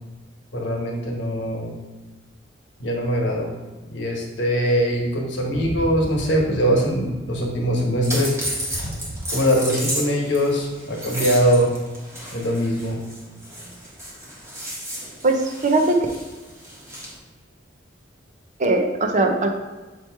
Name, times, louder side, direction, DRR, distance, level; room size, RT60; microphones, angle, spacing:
voice 1, 0.5-1.8 2.8-3.5 3.9-8.8 9.3-11.7 12.3-13.0, equal, 65° left, -1 dB, 1.3 m, -22 dB
sound 1, 8.0-17.2, equal, 15° right, 1.4 m, -33 dB
voice 2, 15.2-16.0 18.6-19.5, right 2 dB, 40° right, 3 dB, 0.6 m, -20 dB
6.9 x 3.0 x 4.5 m, 1.2 s
head